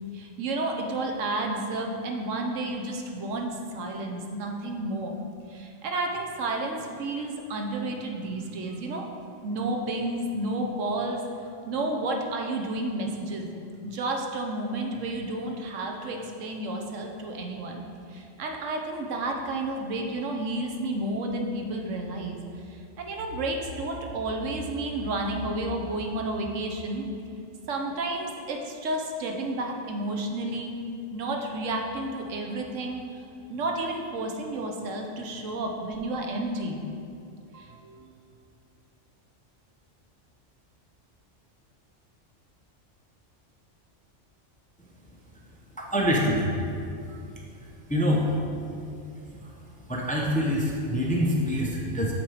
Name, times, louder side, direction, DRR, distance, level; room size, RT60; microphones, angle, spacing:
voice 1, 0.1-5.2 5.5-9.1 9.4-11.2 11.7-13.5 13.8-17.8 18.1-22.4 23.0-27.0 27.7-30.7 31.1-33.0 33.5-36.8 37.5-38.1 47.1-47.2, right 2 dB, 85° right, 2 dB, 1.1 m, -31 dB
voice 2, 45.8-46.4 47.9-48.6 49.3-49.5 49.9-52.1, equal, 10° left, -2 dB, 0.6 m, -25 dB
7.7 x 4.4 x 4.8 m, 2.5 s
omnidirectional pair, 1.3 m